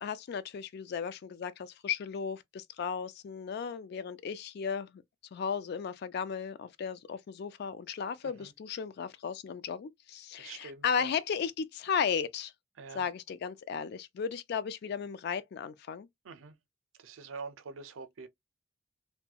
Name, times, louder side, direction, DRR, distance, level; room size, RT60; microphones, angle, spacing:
voice 1, 0.0-5.0 5.3-12.5 12.9-16.1, left 6 dB, 55° left, 0.3 m, -35 dB
voice 2, 10.3-11.1 12.8-13.1 16.2-16.5 17.0-18.3, right 4 dB, 85° right, 0.5 m, -45 dB
2.2 x 2.1 x 2.7 m
head